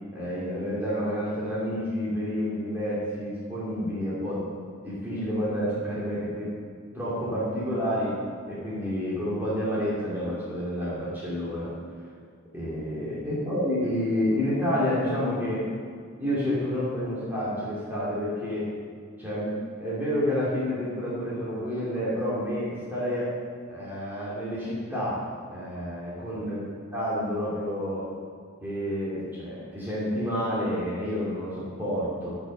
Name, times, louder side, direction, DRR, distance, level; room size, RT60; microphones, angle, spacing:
voice 1, 0.1-4.5 4.8-6.5 6.9-8.2 8.5-11.7 12.5-15.6 16.2-18.6 19.2-19.5 19.8-23.3 23.7-25.2 25.5-28.0 28.6-32.4, equal, 10° right, -9 dB, 2.6 m, -29 dB
11.5 x 6.2 x 6.6 m, 2.1 s
head